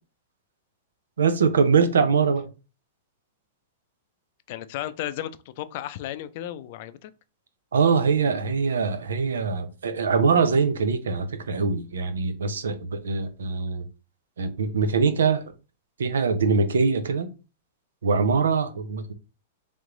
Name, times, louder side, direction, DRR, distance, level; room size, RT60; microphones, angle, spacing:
voice 1, 1.2-2.5 7.7-13.9 14.4-15.4 16.0-17.3 18.0-19.1, right 5 dB, 85° right, 0.7 m, -23 dB
voice 2, 4.5-7.1, left 12 dB, 55° left, 0.4 m, -34 dB
3.4 x 3.2 x 3.8 m
hypercardioid pair, 125°, 0 cm